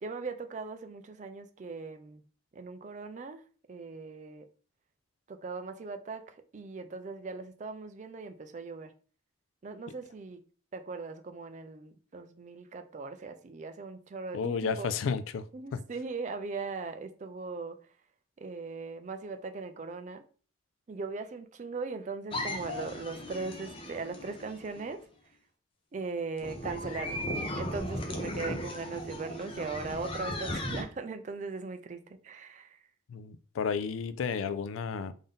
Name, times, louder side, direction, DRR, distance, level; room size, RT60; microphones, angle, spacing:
voice 1, 0.0-2.2 2.5-3.4 3.7-4.5 5.3-8.9 9.6-10.4 10.7-14.9 15.5-17.8 18.4-20.2 20.9-25.0 25.9-27.3 27.6-32.8, right 4 dB, 35° right, 0.3 m, -39 dB
voice 2, 14.3-15.4 15.7-15.8 33.1-35.1, left 5 dB, 90° left, 0.3 m, -32 dB
sound 1, 22.3-24.9 26.4-30.8, left 1 dB, 30° left, 0.5 m, -37 dB
3.5 x 2.7 x 3.6 m
head